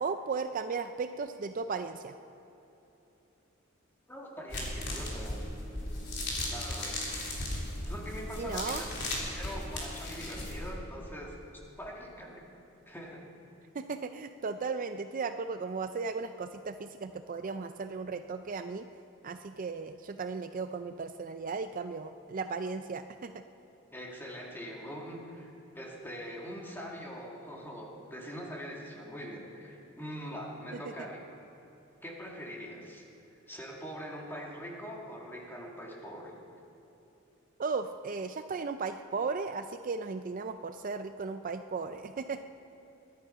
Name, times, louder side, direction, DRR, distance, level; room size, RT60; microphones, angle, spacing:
voice 1, 0.0-2.2 8.4-8.8 13.7-18.9 19.2-23.3 37.6-42.4, right 4 dB, 40° right, 9 dB, 0.4 m, -36 dB
voice 2, 4.1-5.4 6.5-7.0 7.9-8.9 9.3-11.3 11.8-12.5 12.9-13.3 23.9-31.3 32.0-33.0 33.5-36.3, equal, 10° left, -2 dB, 2.3 m, -43 dB
sound 1, 4.5-10.7, left 1 dB, 55° left, 3.5 m, -36 dB
22.5 x 10.5 x 5.6 m, 2.9 s
head